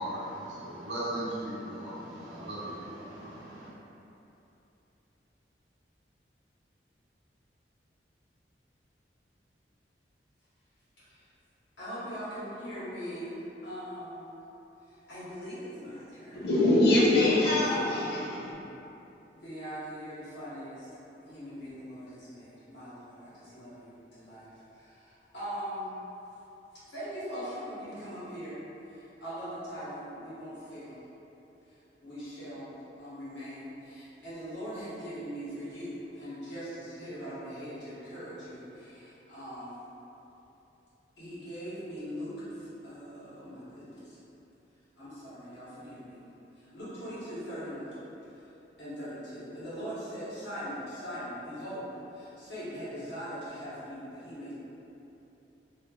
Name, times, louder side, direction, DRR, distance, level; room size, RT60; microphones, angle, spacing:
voice 1, 0.0-3.7, right 1 dB, 80° right, -10 dB, 0.9 m, -37 dB
voice 2, 11.8-13.3 13.6-14.3 15.1-16.5 17.6-18.1 19.3-20.9 21.2-24.5 24.7-25.9 26.9-28.6 28.9-31.0 32.0-39.8 41.2-44.2 45.0-46.2 46.6-48.0 48.8-54.5, equal, 80° left, -12 dB, 1.2 m, -41 dB
voice 3, 16.3-18.5, left 1 dB, 60° left, -5 dB, 0.5 m, -24 dB
3.1 x 2.5 x 2.4 m, 3.0 s
head